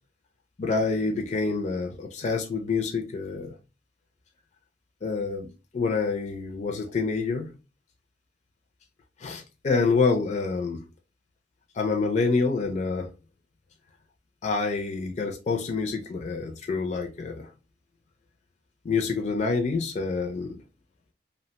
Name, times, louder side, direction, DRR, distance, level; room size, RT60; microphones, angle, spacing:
voice 1, 0.6-3.5 5.0-7.5 9.2-10.8 11.7-13.1 14.4-17.5 18.8-20.6, left 4 dB, 40° left, 0.4 m, -27 dB
2.8 x 2.1 x 2.8 m
head